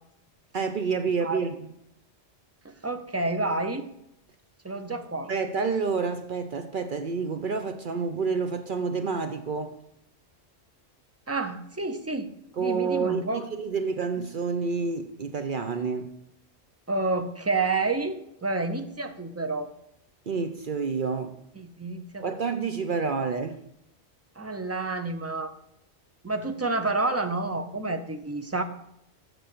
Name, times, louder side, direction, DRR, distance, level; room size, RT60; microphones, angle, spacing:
voice 1, 0.5-1.7 5.3-9.8 12.6-16.1 20.3-21.4 22.2-23.6, right 5 dB, 55° right, 8 dB, 0.8 m, -29 dB
voice 2, 2.6-3.8 4.6-5.3 11.3-12.3 12.6-13.4 16.9-19.7 21.6-22.4 24.4-25.5 26.2-28.6, right 3 dB, 15° right, 7 dB, 0.6 m, -29 dB
8.0 x 6.2 x 6.6 m, 0.79 s
omnidirectional pair, 1.1 m